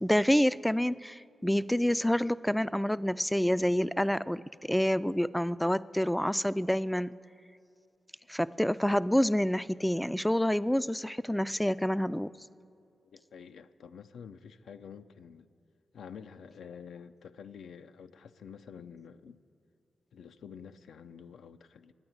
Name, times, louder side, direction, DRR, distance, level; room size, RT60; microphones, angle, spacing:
voice 1, 0.0-7.2 8.3-12.3, equal, 5° left, 0.3 m, -28 dB
voice 2, 13.1-15.5 15.9-19.4 20.1-21.9, left 7 dB, 80° left, 0.4 m, -48 dB
10.5 x 8.9 x 9.5 m
supercardioid pair, 40°, 0 cm